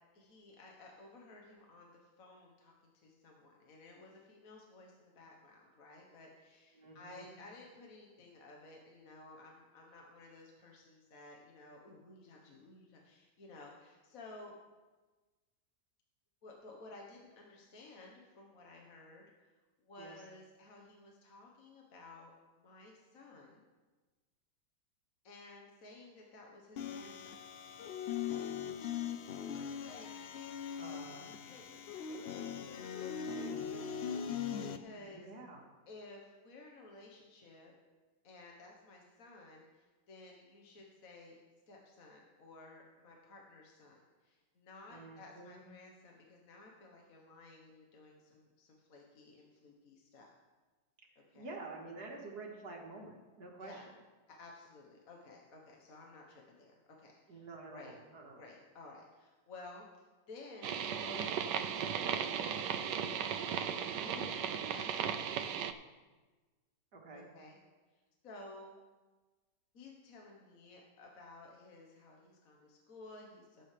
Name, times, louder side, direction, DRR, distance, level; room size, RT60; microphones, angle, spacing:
voice 1, 0.1-14.5 16.4-19.5 19.8-23.6 25.2-27.3 29.1-30.1 31.4-33.9 34.3-35.3 35.9-37.7 38.2-41.4 41.7-50.3 51.1-51.5 53.6-53.9 54.3-57.9 58.4-59.9 60.3-65.7 67.1-67.6 67.9-68.7 69.7-73.6, left 2 dB, 55° left, -1 dB, 1.6 m, -55 dB
voice 2, 6.7-7.4 20.0-20.2 30.8-31.4 34.9-35.6 44.9-45.7 51.3-53.8 57.3-58.4 66.9-67.3, right 3 dB, 65° right, 0 dB, 2.2 m, -49 dB
sound 1, 26.8-34.8, left 8 dB, 90° left, 0.5 m, -40 dB
sound 2, 60.6-65.7, right 8 dB, 85° right, 1.2 m, -36 dB
17.5 x 7.7 x 3.3 m, 1.3 s
omnidirectional pair, 1.9 m